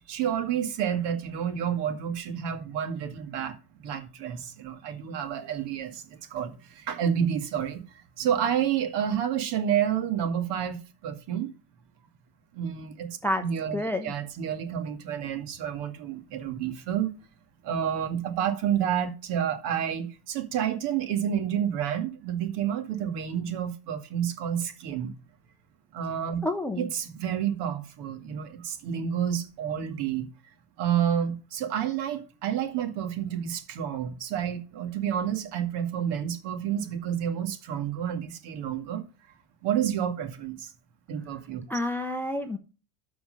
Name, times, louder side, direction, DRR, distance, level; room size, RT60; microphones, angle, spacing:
voice 1, 0.1-11.5 12.5-17.1 17.6-25.1 25.9-26.4 26.8-30.3 30.8-39.0 39.6-40.7 41.1-41.6, right 9 dB, 60° right, 2.2 m, -29 dB
voice 2, 13.7-14.1 26.4-26.9 41.7-42.6, left 1 dB, 5° left, 0.5 m, -29 dB
13.0 x 4.7 x 5.2 m
cardioid pair, 165°, 46 cm